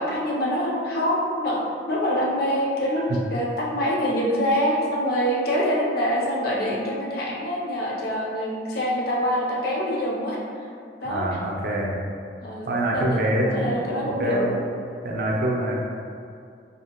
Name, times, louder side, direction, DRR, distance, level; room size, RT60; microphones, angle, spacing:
voice 1, 0.0-1.6 1.9-3.0 3.3-10.4 11.0-11.3 12.4-14.5, equal, 55° left, -4 dB, 0.5 m, -25 dB
voice 2, 11.0-12.0 12.7-13.7 14.2-14.4 15.0-15.8, right 1 dB, 55° right, -2 dB, 0.4 m, -25 dB
2.8 x 2.4 x 2.8 m, 2.3 s
head